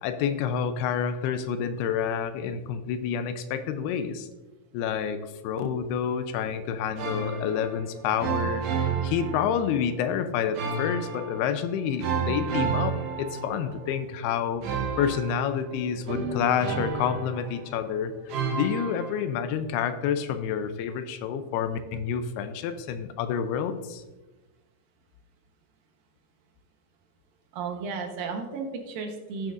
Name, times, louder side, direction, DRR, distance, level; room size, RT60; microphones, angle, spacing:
voice 1, 0.0-4.3 4.7-18.1 18.5-24.0, left 8 dB, 85° left, 10 dB, 2.6 m, -28 dB
sound 1, 7.0-7.9 8.2-9.9 10.5-11.6 12.0-13.9 14.6-17.8 18.3-19.2, right 5 dB, 90° right, 3.6 m, -31 dB
voice 2, 27.5-29.5, right 4 dB, 70° right, 3 dB, 2.5 m, -34 dB
17.0 x 6.3 x 2.5 m, 1.1 s
omnidirectional pair, 4.6 m